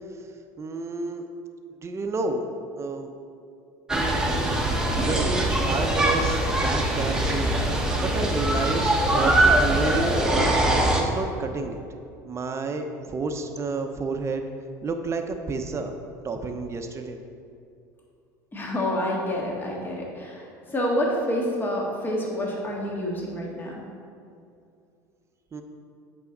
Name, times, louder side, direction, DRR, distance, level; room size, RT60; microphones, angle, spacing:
voice 1, 0.6-1.2 1.8-2.5 2.8-3.1 4.1-4.6 5.0-7.5 8.0-10.2 10.6-11.8 12.2-14.4 14.8-15.9 16.2-17.2 25.5-25.6, right 3 dB, 30° right, 6 dB, 0.8 m, -30 dB
sound 1, 3.9-11.0, right 1 dB, 5° right, 1.2 m, -22 dB
voice 2, 18.5-23.8, left 1 dB, 20° left, -2 dB, 1.7 m, -28 dB
8.2 x 5.8 x 3.9 m, 2.5 s
hypercardioid pair, 85°, 10 cm